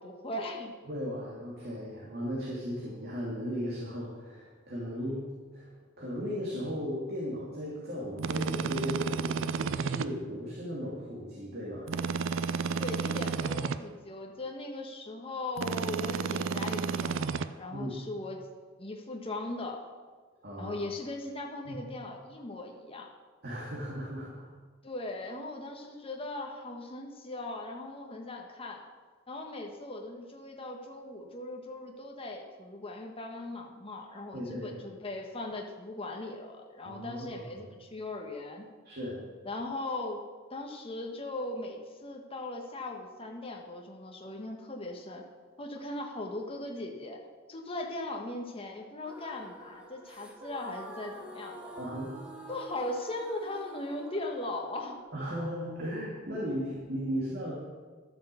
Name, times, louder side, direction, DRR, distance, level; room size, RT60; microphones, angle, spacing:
voice 1, 0.0-0.7 12.8-18.4 18.8-19.8 20.6-23.1 24.8-28.8 29.3-38.7 39.4-40.2 40.5-45.2 45.6-47.2 47.5-51.8 52.5-55.0, left 2 dB, 30° left, 1 dB, 1.5 m, -39 dB
voice 2, 0.8-5.7 6.0-11.9 17.7-17.9 20.4-20.7 21.6-21.7 23.4-24.4 34.3-34.7 36.8-37.4 38.8-39.2 51.8-52.1 55.1-57.6, equal, 50° right, -5 dB, 2.8 m, -36 dB
sound 1, 8.2-10.1 11.9-13.8 15.6-17.5, right 5 dB, 65° right, 0.5 m, -31 dB
sound 2, 49.1-57.0, right 1 dB, 5° right, 1.5 m, -48 dB
12.5 x 8.8 x 7.0 m, 1.4 s
head